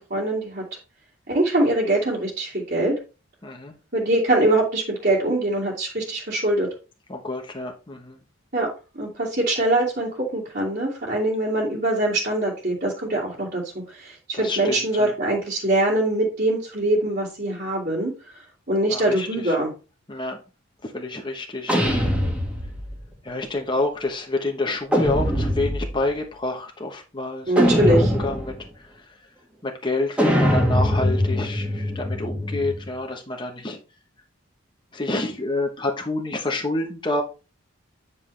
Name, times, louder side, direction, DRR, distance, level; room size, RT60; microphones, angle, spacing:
voice 1, 0.1-0.6 1.3-2.9 3.9-6.7 8.5-8.7 8.9-13.6 13.9-18.1 18.7-19.7 27.5-28.1, right 1 dB, 45° right, -6 dB, 2.5 m, -23 dB
voice 2, 3.4-3.7 7.1-8.2 14.3-15.1 18.9-19.5 20.1-20.4 20.8-22.1 23.2-28.5 29.6-33.8 34.9-37.2, left 2 dB, 20° left, 2 dB, 1.0 m, -28 dB
sound 1, 21.7-23.0 24.9-26.0 27.6-28.6 30.2-32.9, equal, 5° right, 1.7 m, -22 dB
9.4 x 5.6 x 3.3 m, 0.32 s
head